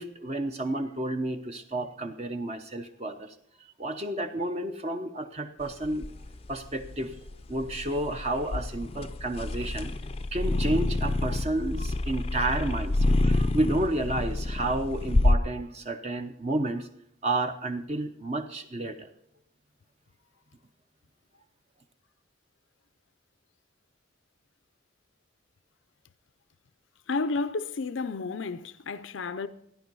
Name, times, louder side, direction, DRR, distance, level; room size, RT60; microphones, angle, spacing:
voice 1, 0.0-3.3 3.8-6.1 6.5-7.2 7.5-9.9 10.3-16.9 17.2-19.1, right 1 dB, 35° right, 0.8 m, -31 dB
sound 1, 5.6-15.4, left 2 dB, 30° left, 0.5 m, -28 dB
voice 2, 27.1-29.5, left 4 dB, 80° left, 0.6 m, -31 dB
15.0 x 10.5 x 5.4 m
head